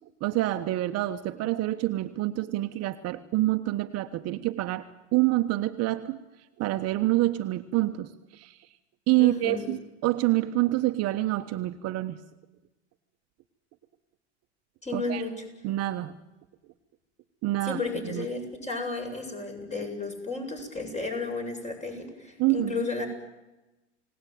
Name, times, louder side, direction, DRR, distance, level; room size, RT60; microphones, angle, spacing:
voice 1, 0.2-4.8 5.1-6.2 6.6-8.6 9.1-12.2 14.9-15.2 15.6-16.1 17.4-18.3 22.4-22.9, right 17 dB, 45° right, 8 dB, 1.2 m, -27 dB
voice 2, 9.2-9.6 14.8-15.4 17.6-23.1, left 3 dB, 20° left, 4 dB, 7.7 m, -33 dB
29.5 x 18.0 x 9.4 m, 1.0 s
hypercardioid pair, 105°, 34 cm